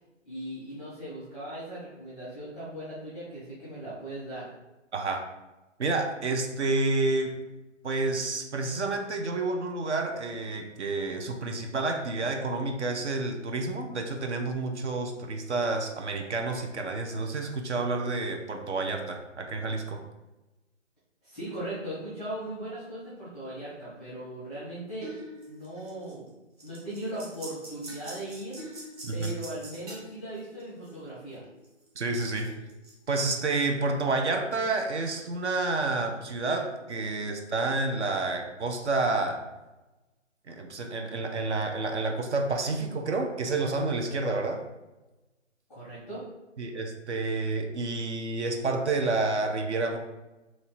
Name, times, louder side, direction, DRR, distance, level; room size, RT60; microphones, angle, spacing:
voice 1, 0.2-4.5 21.2-25.1 25.5-26.3 26.6-28.6 29.1-31.4 45.7-46.2, right 1 dB, ahead, -12 dB, 0.6 m, -38 dB
voice 2, 4.9-5.3 5.8-7.4 7.8-20.0 29.0-29.3 32.0-32.5 33.1-39.4 40.5-44.6 46.6-50.0, right 3 dB, 65° right, 4 dB, 0.7 m, -29 dB
sound 1, 25.0-26.3 26.6-31.2 31.4-33.0, equal, 30° right, 1.2 m, -44 dB
3.0 x 2.6 x 4.4 m, 1.0 s
figure-of-eight pair, 155°, 37 cm